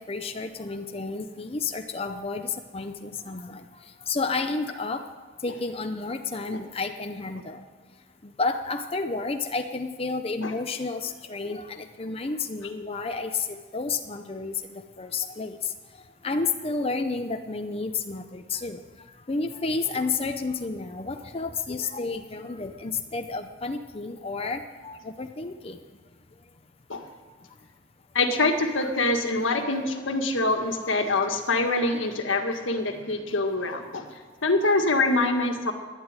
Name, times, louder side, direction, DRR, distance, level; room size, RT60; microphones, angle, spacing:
voice 1, 0.0-5.1 5.4-7.7 8.2-18.8 19.3-25.8 30.0-30.1, left 4 dB, 30° left, 6 dB, 0.7 m, -31 dB
voice 2, 28.1-34.1 34.4-35.7, left 2 dB, 80° left, 5 dB, 1.7 m, -25 dB
11.5 x 11.0 x 9.6 m, 1.5 s
head